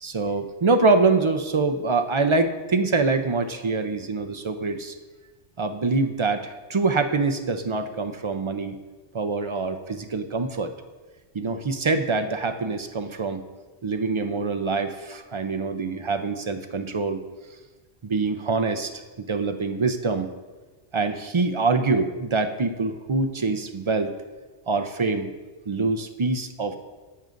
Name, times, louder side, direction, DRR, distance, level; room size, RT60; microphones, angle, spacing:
voice 1, 0.0-4.9 5.6-8.8 9.1-10.7 11.3-13.4 13.8-17.2 18.0-18.9 19.2-20.3 20.9-24.1 24.7-25.3 25.7-26.8, right 3 dB, 40° right, 7 dB, 0.4 m, -25 dB
15.5 x 9.2 x 2.5 m, 1.2 s
omnidirectional pair, 1.2 m